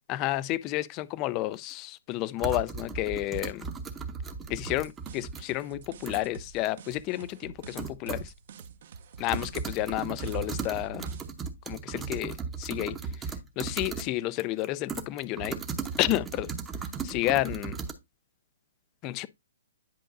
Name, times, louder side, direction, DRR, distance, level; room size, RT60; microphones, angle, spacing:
voice 1, 0.1-3.7 4.5-8.3 9.2-11.1 11.7-15.6 16.0-16.5 17.0-17.8 19.0-19.3, left 17 dB, 25° left, 0.4 m, -31 dB
sound 1, 1.5-1.6 2.4-5.4 5.8-6.3 6.6-6.7 7.3-7.4 7.8-8.3 8.6-8.7 9.0-14.1 14.4-17.9, right 5 dB, 10° right, 0.7 m, -36 dB
sound 2, 4.6-11.5, right 6 dB, 50° right, 0.7 m, -48 dB
10.0 x 5.1 x 2.5 m
hypercardioid pair, 165°, 0 cm